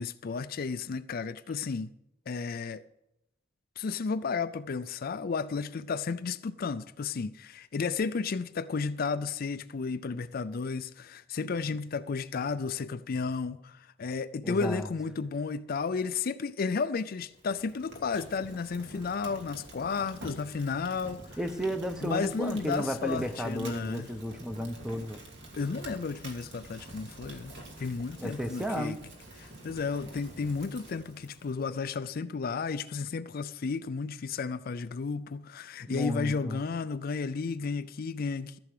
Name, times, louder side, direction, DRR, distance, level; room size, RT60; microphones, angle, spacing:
voice 1, 0.0-1.9 2.3-2.8 3.8-21.4 22.0-24.1 25.5-29.0 29.4-38.6, left 5 dB, 50° left, 0.4 m, -33 dB
voice 2, 14.4-14.9 21.4-25.2 28.2-29.0 35.9-36.6, equal, 5° right, 0.8 m, -33 dB
Fire, 17.3-31.7, right 1 dB, 65° right, 2.7 m, -48 dB
14.5 x 7.1 x 6.6 m
head